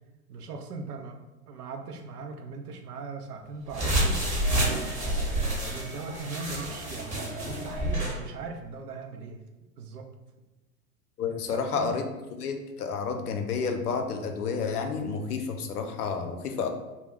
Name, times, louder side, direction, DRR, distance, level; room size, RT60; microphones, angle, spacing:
voice 1, 0.3-4.2 4.9-9.4 9.8-10.1 11.3-11.9 16.2-16.3, right 4 dB, 80° right, 4 dB, 0.6 m, -39 dB
sound 1, 3.7-8.2, right 1 dB, 15° right, 1.0 m, -28 dB
voice 2, 11.2-12.0 12.4-16.7, left 5 dB, 80° left, 6 dB, 0.6 m, -30 dB
2.3 x 2.1 x 3.6 m, 1.1 s
hypercardioid pair, 95°, 45 cm